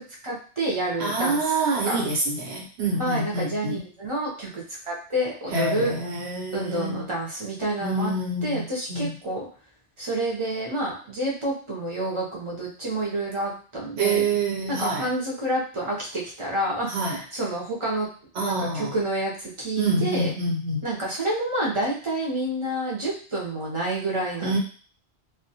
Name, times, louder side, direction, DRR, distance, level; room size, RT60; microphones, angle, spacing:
voice 1, 0.0-1.4 1.8-2.1 3.0-5.9 6.5-8.1 8.4-9.5 10.0-14.3 14.7-18.1 18.4-20.3 20.8-24.6, right 1 dB, 35° right, -4 dB, 0.6 m, -28 dB
voice 2, 1.0-3.8 5.5-7.0 7.8-9.1 14.0-15.1 16.9-17.2 18.3-18.9 19.8-20.8 24.4-24.6, right 2 dB, 85° right, -1 dB, 1.1 m, -26 dB
2.2 x 2.1 x 2.7 m, 0.41 s
omnidirectional pair, 1.1 m